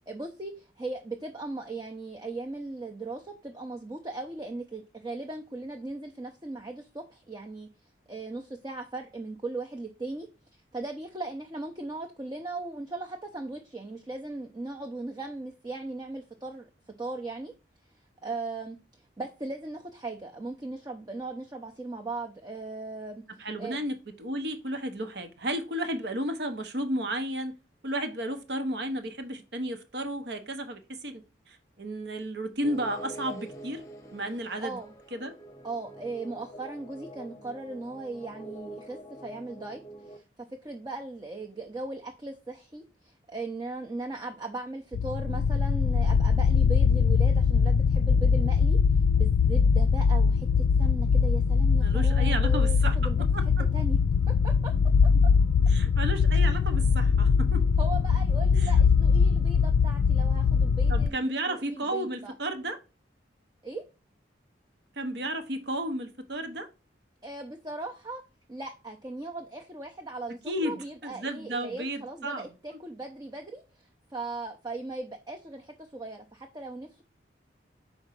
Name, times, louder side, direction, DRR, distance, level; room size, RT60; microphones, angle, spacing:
voice 1, 0.1-7.7 8.1-10.3 10.7-16.7 17.0-17.5 18.2-18.8 19.2-23.2 23.6-23.8 34.6-34.9 35.6-40.2 40.6-48.8 49.1-53.2 53.7-54.0 54.3-54.7 57.8-62.3 63.6-63.8 67.2-68.2 68.5-77.0, right 2 dB, 20° right, 0.6 m, -38 dB
voice 2, 23.4-27.5 27.8-33.9 34.1-34.8 35.1-35.4 51.8-53.0 53.3-53.7 55.7-57.7 60.9-62.8 65.0-66.7 70.5-72.5, right 1 dB, 65° right, 1.0 m, -33 dB
sound 1, 32.6-40.2, right 1 dB, 20° left, 0.9 m, -45 dB
sound 2, 44.9-61.1, left 5 dB, 90° left, 0.3 m, -22 dB
5.0 x 4.4 x 5.8 m
head